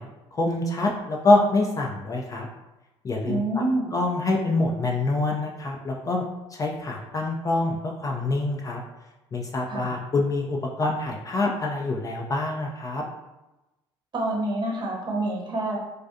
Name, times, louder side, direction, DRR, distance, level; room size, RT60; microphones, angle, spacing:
voice 1, 0.3-2.5 3.0-3.6 3.9-6.2 6.5-8.8 9.3-13.0, left 2 dB, 25° left, 0 dB, 0.3 m, -25 dB
voice 2, 3.3-3.9 9.7-10.0 14.1-15.8, right 2 dB, 35° right, -1 dB, 0.7 m, -27 dB
2.3 x 2.3 x 2.5 m, 1.0 s
hypercardioid pair, 60°, 14 cm